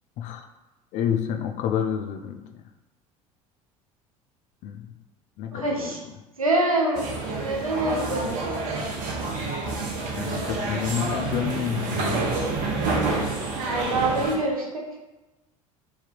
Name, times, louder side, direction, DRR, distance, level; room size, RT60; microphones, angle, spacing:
voice 1, 0.2-0.5 0.9-2.4 4.6-4.9 5.4-6.0 10.1-12.2, left 9 dB, 45° left, 5 dB, 0.4 m, -29 dB
voice 2, 5.5-6.0 6.4-8.5 13.7-14.8, right 2 dB, 85° right, 0 dB, 0.5 m, -25 dB
sound 1, 6.9-14.3, right 3 dB, 50° right, 0.7 m, -28 dB
3.2 x 2.7 x 2.4 m, 1.1 s
figure-of-eight pair, 65°, 18 cm